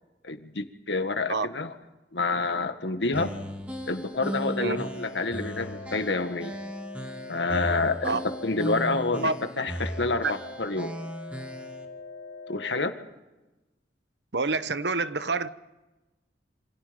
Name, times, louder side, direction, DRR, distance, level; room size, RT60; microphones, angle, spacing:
voice 1, 0.2-1.7 2.1-3.3 3.9-6.6 7.3-10.9 12.5-12.9, left 3 dB, 75° left, 1.9 m, -28 dB
sound 1, 3.1-11.8, equal, 5° right, 2.7 m, -37 dB
sound 2, 4.1-12.9, left 3 dB, 55° left, 3.2 m, -43 dB
voice 2, 14.3-15.5, right 3 dB, 70° right, 1.1 m, -27 dB
27.5 x 26.5 x 5.4 m
head